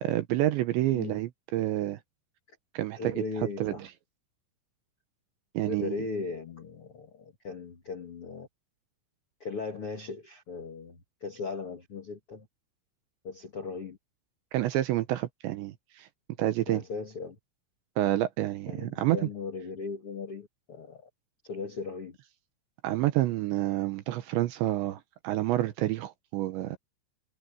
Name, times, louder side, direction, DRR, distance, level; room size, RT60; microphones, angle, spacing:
voice 1, 0.0-2.0 2.7-3.2 3.6-3.9 5.5-5.9 14.5-16.1 16.4-16.8 18.0-19.2 22.8-26.8, right 14 dB, 75° right, 2.9 m, -28 dB
voice 2, 2.9-3.9 5.6-8.5 9.4-12.5 13.2-14.0 16.7-17.3 18.7-21.1 21.4-22.2, left 4 dB, 55° left, 1.6 m, -38 dB
omnidirectional pair, 5.9 m